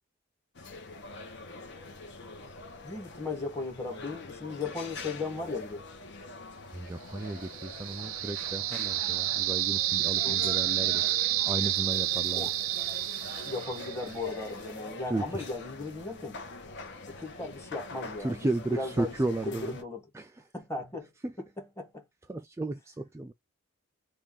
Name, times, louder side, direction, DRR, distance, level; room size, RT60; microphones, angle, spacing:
sound 1, 0.5-19.8, left 3 dB, 60° left, 0.9 m, -44 dB
voice 1, 2.8-5.8 10.2-10.4 12.3-12.5 13.4-16.4 17.1-20.0 20.5-21.1 21.6-22.0, left 3 dB, 15° left, 1.2 m, -37 dB
voice 2, 6.7-11.0 11.5-12.5 15.1-15.5 18.2-19.8 20.1-20.4 21.2-21.3 22.3-23.3, right 2 dB, 15° right, 0.3 m, -34 dB
sound 2, 7.3-14.2, right 14 dB, 80° right, 0.4 m, -30 dB
3.4 x 2.4 x 3.7 m
head